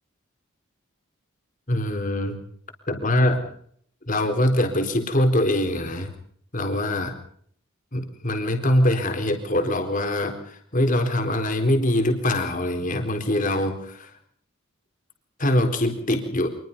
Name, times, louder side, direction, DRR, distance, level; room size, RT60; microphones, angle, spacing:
voice 1, 1.7-2.4 2.9-3.5 4.1-6.1 6.5-7.2 7.9-14.1 15.4-16.5, left 1 dB, 40° left, 5 dB, 4.1 m, -23 dB
26.5 x 21.0 x 5.4 m, 0.63 s
head